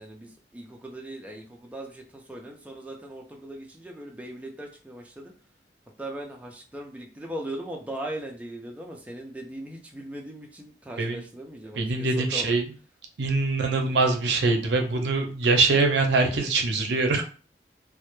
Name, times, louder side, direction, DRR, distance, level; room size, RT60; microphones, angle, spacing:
voice 1, 0.0-5.3 6.0-12.6, right 1 dB, 10° right, 0 dB, 0.3 m, -39 dB
voice 2, 11.7-12.6 13.2-17.2, right 3 dB, 70° right, 4 dB, 0.5 m, -23 dB
2.1 x 2.0 x 2.9 m, 0.37 s
head